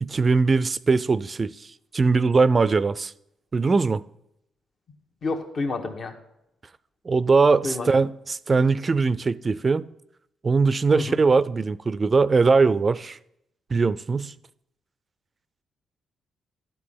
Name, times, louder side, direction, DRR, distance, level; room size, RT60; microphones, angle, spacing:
voice 1, 0.0-1.5 1.9-3.1 3.5-4.0 7.1-9.8 10.4-13.2 13.7-14.3, right 4 dB, 40° right, 0.4 m, -21 dB
voice 2, 5.2-6.1 7.6-7.9 10.9-11.2, left 3 dB, 55° left, 1.2 m, -29 dB
12.0 x 4.7 x 5.6 m
supercardioid pair, 55°, 0 cm